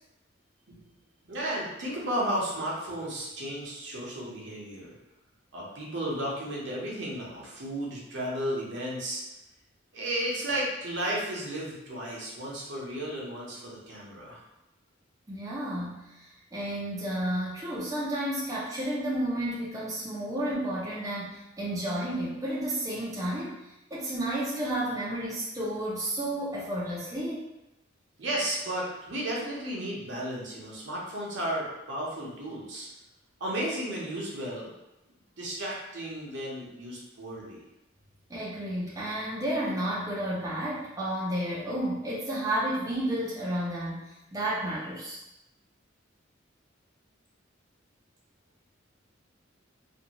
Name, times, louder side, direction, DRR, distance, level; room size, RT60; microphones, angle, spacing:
voice 1, 1.3-4.9 5.5-9.2 9.9-14.4 28.2-32.9 33.4-34.7 35.4-37.6, right 1 dB, 65° right, -4 dB, 0.7 m, -33 dB
voice 2, 15.3-23.6 23.9-27.5 38.3-45.2, right 1 dB, 15° right, -8 dB, 0.4 m, -31 dB
2.5 x 2.2 x 2.8 m, 0.93 s
head